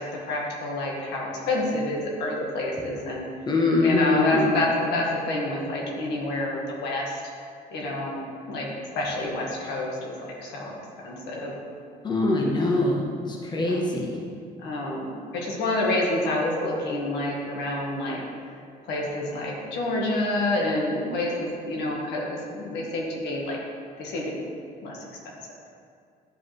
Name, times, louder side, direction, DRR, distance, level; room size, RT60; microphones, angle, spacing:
voice 1, 0.0-3.3 3.8-7.2 7.7-8.2 8.5-8.7 8.9-10.1 10.4-10.7 11.0-11.6 13.7-13.8 14.6-18.2 18.8-22.2 22.5-23.6 24.0-24.3 24.8-25.0, left 2 dB, 85° left, -2 dB, 1.6 m, -28 dB
voice 2, 3.5-4.5 12.0-14.2, left 2 dB, 25° left, -1 dB, 1.0 m, -23 dB
11.0 x 4.7 x 3.1 m, 2.2 s
cardioid pair, 110°, 17 cm